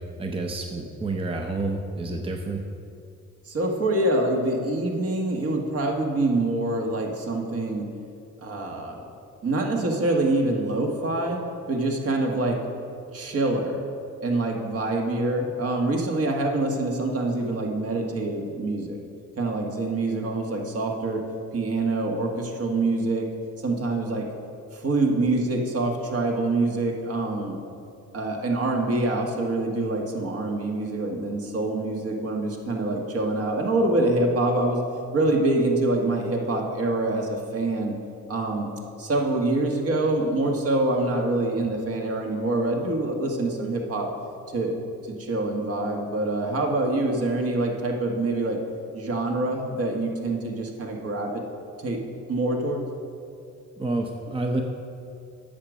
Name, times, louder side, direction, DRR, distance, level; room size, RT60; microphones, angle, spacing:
voice 1, 0.2-2.6 53.8-54.6, right 2 dB, 20° right, 3 dB, 0.7 m, -29 dB
voice 2, 3.5-7.9 8.4-9.0 9.4-11.4 11.7-12.6 13.1-13.8 14.2-19.0 19.4-21.2 21.5-23.2 23.6-24.2 24.7-27.6 28.1-34.8 35.1-37.9 38.3-38.7 39.0-44.1 44.5-44.7 45.0-48.6 48.9-51.4 51.8-52.0 52.3-52.8, right 2 dB, 50° right, 1 dB, 1.6 m, -25 dB
8.6 x 6.5 x 6.2 m, 2.5 s
cardioid pair, 90°, 30 cm